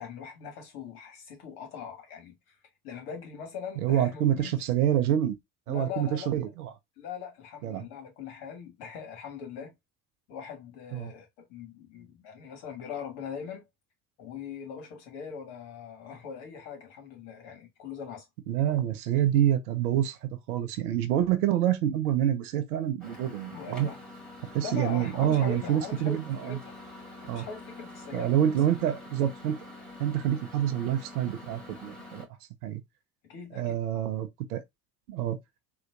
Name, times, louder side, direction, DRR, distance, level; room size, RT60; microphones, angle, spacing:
voice 1, 0.0-2.3 2.8-4.5 5.7-6.3 7.0-9.7 10.3-13.7 14.2-18.2 23.5-24.0 24.6-26.7 27.2-28.5 33.3-33.8, left 7 dB, 50° left, 1.5 m, -41 dB
voice 2, 3.8-5.4 5.7-6.7 7.6-7.8 10.9-11.1 18.5-23.9 24.5-26.6 27.3-27.5 28.1-29.6 30.0-32.3 32.6-32.8 33.5-34.6 35.1-35.4, right 11 dB, 65° right, 0.7 m, -27 dB
Microwave oven, 23.0-32.2, left 2 dB, ahead, 2.3 m, -46 dB
3.7 x 2.5 x 2.5 m
figure-of-eight pair, 65°, 49 cm